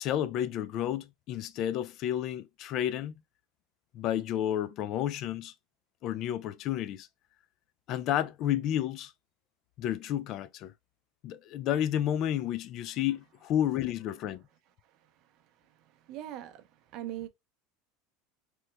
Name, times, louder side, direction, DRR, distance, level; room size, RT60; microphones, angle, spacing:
voice 1, 0.0-3.1 3.9-5.5 6.0-7.1 7.9-9.1 9.8-10.7 11.2-14.4, left 11 dB, 55° left, 0.3 m, -31 dB
voice 2, 14.8-15.3 15.7-17.3, right 12 dB, 55° right, 0.6 m, -42 dB
3.0 x 2.1 x 3.2 m
hypercardioid pair, 95°, 0 cm